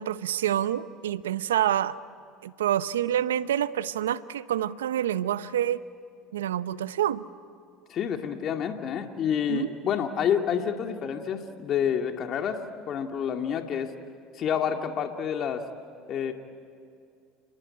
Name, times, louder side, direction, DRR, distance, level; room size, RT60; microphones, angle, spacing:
voice 1, 0.0-2.0 2.4-5.8 6.3-7.2 9.5-9.7, right 11 dB, 90° right, 15 dB, 0.8 m, -27 dB
voice 2, 7.9-13.9 14.3-15.7 16.1-16.3, left 8 dB, 50° left, 5 dB, 2.1 m, -28 dB
30.0 x 20.5 x 9.8 m, 2.3 s
hypercardioid pair, 80°, 0 cm